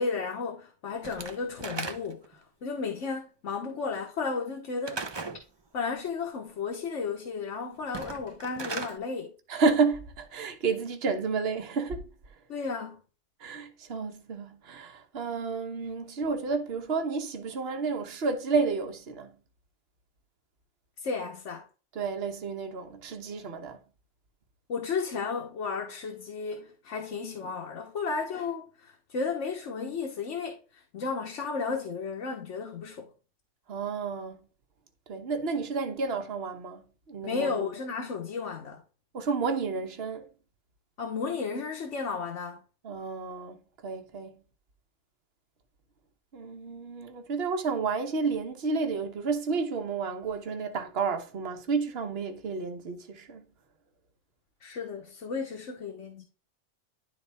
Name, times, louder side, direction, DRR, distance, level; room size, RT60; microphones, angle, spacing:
voice 1, 0.0-5.0 5.7-9.3 12.5-13.0 21.0-21.7 24.7-33.1 37.2-38.8 41.0-42.6 54.6-56.3, left 5 dB, 90° left, 1.4 m, -33 dB
Slam / Wood, 1.0-2.3 4.8-5.4 7.8-9.0, right 3 dB, 30° right, 0.6 m, -37 dB
voice 2, 9.5-12.1 13.4-19.3 21.9-23.8 33.7-34.4 35.1-36.8 37.1-37.7 39.1-40.3 42.8-43.6 43.8-44.3 46.3-53.4, right 4 dB, 60° right, 1.2 m, -31 dB
11.5 x 4.2 x 3.4 m
omnidirectional pair, 1.2 m